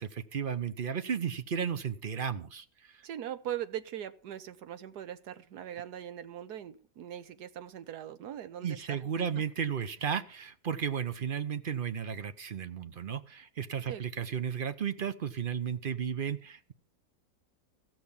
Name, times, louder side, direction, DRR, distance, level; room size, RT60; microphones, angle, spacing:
voice 1, 0.0-3.1 8.6-16.7, right 7 dB, 45° right, 11 dB, 0.7 m, -34 dB
voice 2, 3.0-9.0 13.9-14.0, right 11 dB, 90° right, 12 dB, 1.4 m, -40 dB
15.5 x 6.1 x 6.9 m, 0.41 s
omnidirectional pair, 1.7 m